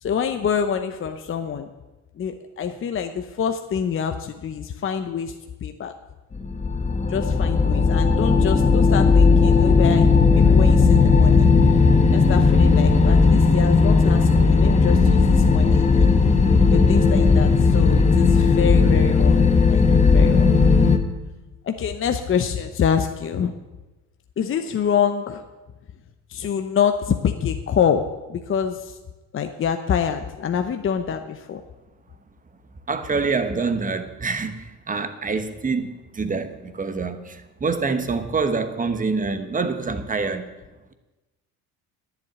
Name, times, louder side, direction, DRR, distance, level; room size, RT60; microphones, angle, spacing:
voice 1, 0.0-1.7 2.2-5.3 5.6-5.9 7.1-11.5 12.1-16.1 16.7-20.6 21.6-23.5 24.4-25.4 26.3-29.0 29.3-31.6, left 7 dB, 40° left, 0.8 m, -26 dB
sound 1, 6.3-21.0, left 4 dB, 20° left, 1.1 m, -16 dB
voice 2, 32.9-40.5, right 4 dB, 25° right, 1.2 m, -26 dB
11.0 x 7.6 x 9.6 m
cardioid pair, 110°, 33 cm